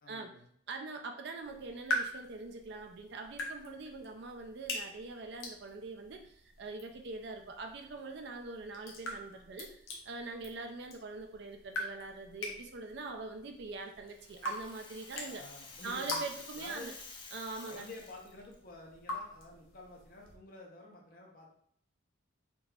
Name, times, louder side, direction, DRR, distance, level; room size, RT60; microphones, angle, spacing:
voice 1, 0.0-0.5 15.2-16.9 17.7-21.5, left 2 dB, 45° left, 0 dB, 0.8 m, -50 dB
voice 2, 0.7-15.4 15.8-16.9 17.3-17.9, right 3 dB, 55° right, 4 dB, 0.4 m, -43 dB
sound 1, 1.4-20.4, left 1 dB, 80° left, 0.8 m, -44 dB
Rattle (instrument), 13.8-18.5, left 4 dB, 25° left, 0.4 m, -50 dB
3.8 x 2.7 x 2.3 m, 0.63 s
head